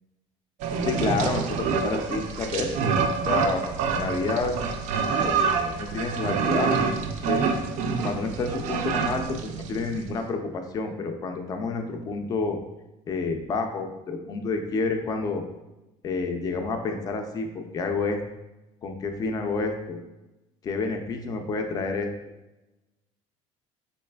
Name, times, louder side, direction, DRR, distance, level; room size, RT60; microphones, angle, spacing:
sound 1, 0.6-10.0, right 5 dB, 65° right, 0.4 m, -27 dB
voice 1, 0.8-2.9 3.3-3.6 3.9-4.6 5.2-6.8 7.1-7.4 8.0-12.6 13.1-15.4 16.0-18.2 18.8-20.0 20.6-22.1, left 3 dB, 30° left, 5 dB, 0.4 m, -29 dB
4.0 x 3.2 x 2.2 m, 1.0 s
cardioid pair, 135°, 13 cm